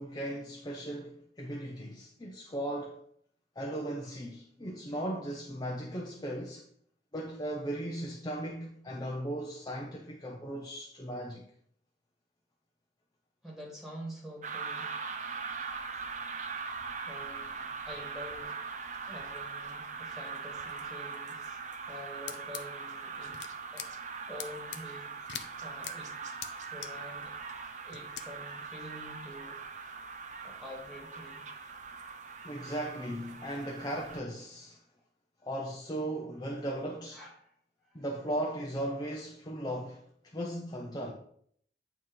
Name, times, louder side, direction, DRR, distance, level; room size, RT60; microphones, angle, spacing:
voice 1, 0.0-3.0 3.6-6.6 7.1-11.5 32.4-34.8 35.4-37.2 37.9-41.1, right 1 dB, 25° left, 0.7 m, -37 dB
voice 2, 13.4-15.0 17.1-18.6 19.1-21.6 21.9-23.4 23.7-23.9 24.3-26.1 26.7-27.3 27.8-29.6 30.4-31.5 37.1-37.5 37.9-38.0, equal, ahead, 1.9 m, -47 dB
sound 1, 14.4-34.2, right 5 dB, 45° right, 0.7 m, -41 dB
sound 2, 22.3-22.6 23.3-23.5 23.8-23.9 24.4-24.8 25.3-25.4 25.8-25.9 26.4-26.5 26.8-26.9 27.9-28.2, left 9 dB, 80° left, 0.7 m, -39 dB
8.7 x 3.1 x 5.4 m
head